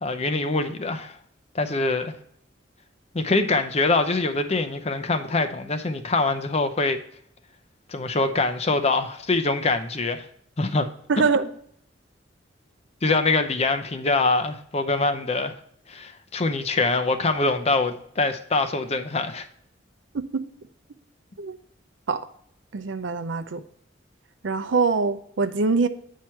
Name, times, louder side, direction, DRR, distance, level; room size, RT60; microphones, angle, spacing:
voice 1, 0.0-1.2 1.5-2.1 3.1-7.0 7.9-10.3 10.6-10.9 13.0-15.6 15.9-19.5, left 3 dB, 35° left, 0.6 m, -24 dB
voice 2, 11.1-11.4 20.1-20.4 21.4-21.6 22.1-22.2 22.7-23.6 24.4-25.9, right 4 dB, 85° right, 0.6 m, -24 dB
8.7 x 4.7 x 4.5 m
head